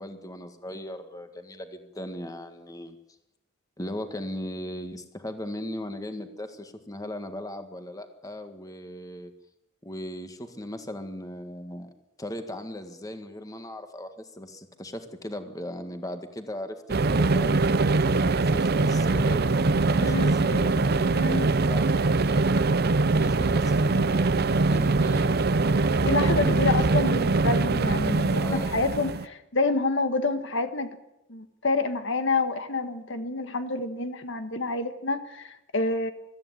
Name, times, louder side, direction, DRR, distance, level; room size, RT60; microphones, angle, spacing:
voice 1, 0.0-3.0 3.8-9.3 9.8-11.9 12.2-19.5 19.9-22.6 23.1-27.0 28.4-28.8, left 1 dB, 15° left, 7 dB, 1.8 m, -38 dB
sound 1, 16.9-29.2, right 3 dB, 50° right, 0.7 m, -23 dB
voice 2, 20.0-20.4 21.1-21.5 26.0-30.9 31.3-36.1, left 3 dB, 65° left, 9 dB, 1.6 m, -28 dB
23.0 x 14.0 x 9.8 m, 0.88 s
head